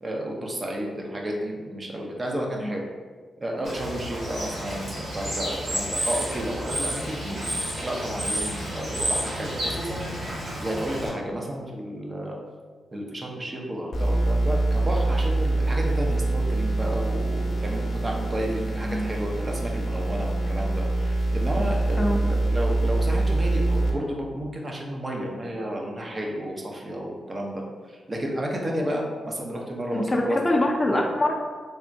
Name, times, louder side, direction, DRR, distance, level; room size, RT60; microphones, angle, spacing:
voice 1, 0.0-2.9 3.4-10.2 10.6-12.4 12.9-30.4, equal, 35° right, 0 dB, 0.7 m, -32 dB
Bird / Water, 3.6-11.1, right 1 dB, 70° right, 1.1 m, -31 dB
sound 1, 13.9-23.9, right 2 dB, 65° left, 0.7 m, -25 dB
voice 2, 29.9-31.4, left 1 dB, 25° left, -1 dB, 0.5 m, -24 dB
3.5 x 2.1 x 2.6 m, 1.5 s
supercardioid pair, 45°, 0 cm